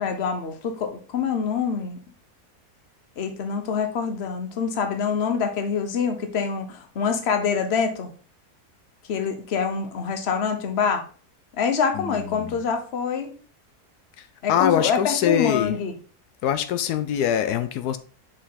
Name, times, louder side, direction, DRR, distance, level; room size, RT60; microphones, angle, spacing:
voice 1, 0.0-2.0 3.2-8.1 9.1-11.0 11.6-13.3 14.4-15.9, left 6 dB, 45° left, 1.1 m, -25 dB
voice 2, 11.9-12.6 14.2-15.8 16.4-18.0, left 10 dB, 85° left, 1.2 m, -24 dB
5.7 x 5.4 x 4.1 m
omnidirectional pair, 1.6 m